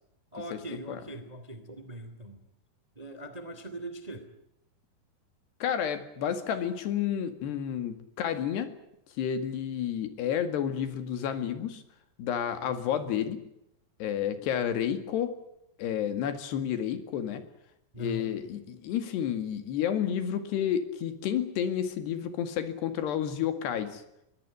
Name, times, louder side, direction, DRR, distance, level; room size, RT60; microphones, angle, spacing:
voice 1, 0.3-2.4 2.9-4.3 7.4-7.5 17.9-18.3, right 1 dB, 15° right, 10 dB, 1.4 m, -41 dB
voice 2, 5.6-8.8 9.2-11.8 12.2-13.4 14.0-15.4 15.8-17.4 18.0-24.0, left 9 dB, 80° left, 10 dB, 4.1 m, -30 dB
22.5 x 17.5 x 9.9 m, 0.81 s
omnidirectional pair, 4.7 m